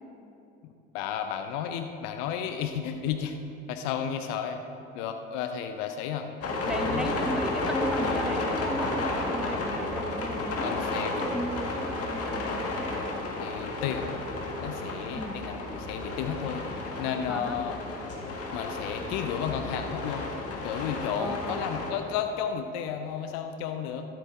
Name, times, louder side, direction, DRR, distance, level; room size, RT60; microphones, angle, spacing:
voice 1, 0.6-3.4 3.7-4.6 4.9-6.3 6.7-7.1 10.6-11.1 13.4-14.1 14.6-16.6 17.0-17.8 18.5-20.3 20.6-24.1, left 8 dB, 75° left, 7 dB, 0.6 m, -33 dB
sound 1, 6.4-21.9, left 2 dB, 50° left, 1.7 m, -32 dB
voice 2, 6.7-13.1 15.2-15.4 17.3-17.6 21.2-21.7, equal, ahead, 6 dB, 0.9 m, -35 dB
12.5 x 8.3 x 3.7 m, 2.8 s
hypercardioid pair, 60°, 30 cm